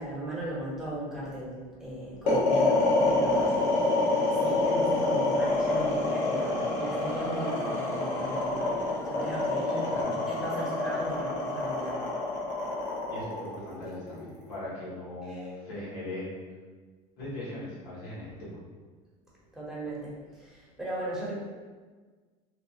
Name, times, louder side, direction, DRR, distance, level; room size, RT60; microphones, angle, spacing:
voice 1, 0.0-3.5 4.4-9.7 10.3-12.0 15.3-15.4 19.5-21.3, right 1 dB, ahead, -8 dB, 1.1 m, -37 dB
sound 1, 2.3-14.5, left 2 dB, 50° left, 1.0 m, -26 dB
sound 2, 2.8-10.0, left 3 dB, 15° left, 0.3 m, -42 dB
voice 2, 9.6-10.2 13.1-16.4 17.2-18.6, left 1 dB, 90° left, -8 dB, 1.3 m, -39 dB
2.7 x 2.2 x 2.8 m, 1.4 s
supercardioid pair, 100°, 19 cm